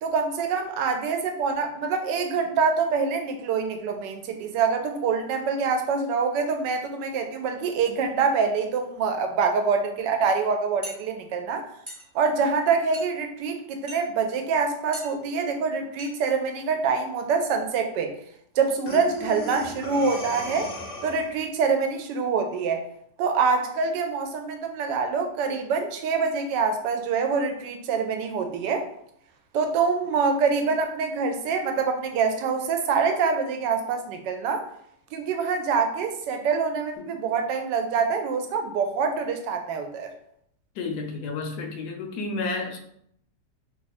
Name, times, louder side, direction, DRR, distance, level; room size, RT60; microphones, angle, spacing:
voice 1, 0.0-11.6 12.1-18.1 18.6-20.7 21.0-22.8 23.2-28.9 29.5-34.6 35.1-40.1, right 5 dB, 85° right, 5 dB, 1.2 m, -25 dB
sound 1, 10.8-11.0 11.9-12.1 12.9-13.1 13.9-14.0 14.9-15.1 16.0-16.1 16.5-16.6 16.9-17.1, right 1 dB, 25° right, 0.7 m, -39 dB
Breathing, 18.9-21.4, left 2 dB, 60° left, 0.5 m, -36 dB
voice 2, 40.8-42.8, left 3 dB, 75° left, 4 dB, 1.1 m, -31 dB
3.0 x 2.4 x 4.0 m, 0.71 s
omnidirectional pair, 1.8 m